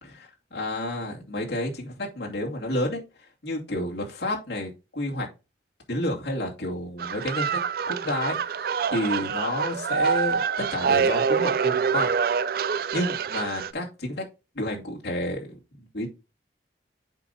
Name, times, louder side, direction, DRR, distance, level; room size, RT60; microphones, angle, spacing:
voice 1, 0.0-3.0 3.4-5.3 5.9-7.6 7.9-12.1 12.9-14.2 14.5-15.6 15.9-16.1, left 1 dB, 75° left, -2 dB, 2.5 m, -30 dB
sound 1, 7.0-13.7, right 6 dB, 55° right, 0.4 m, -26 dB
8.0 x 5.3 x 2.7 m, 0.28 s
head